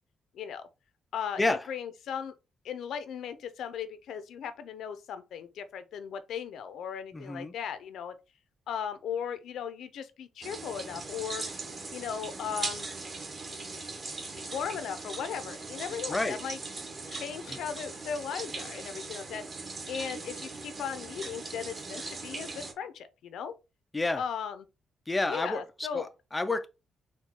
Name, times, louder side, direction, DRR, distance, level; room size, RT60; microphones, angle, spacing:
voice 1, 0.3-0.7 1.1-2.3 2.6-8.2 8.7-11.4 11.9-12.9 14.4-16.6 17.1-19.4 19.9-23.5 24.2-24.7 25.3-26.1, left 7 dB, 75° left, 0.6 m, -37 dB
voice 2, 7.1-7.5 16.1-16.4 17.5-17.6 23.9-24.2 25.1-26.7, left 2 dB, 15° left, 0.4 m, -30 dB
sound 1, 10.4-22.7, right 3 dB, 30° right, 1.0 m, -40 dB
4.5 x 2.3 x 4.3 m
cardioid pair, 155°, 0 cm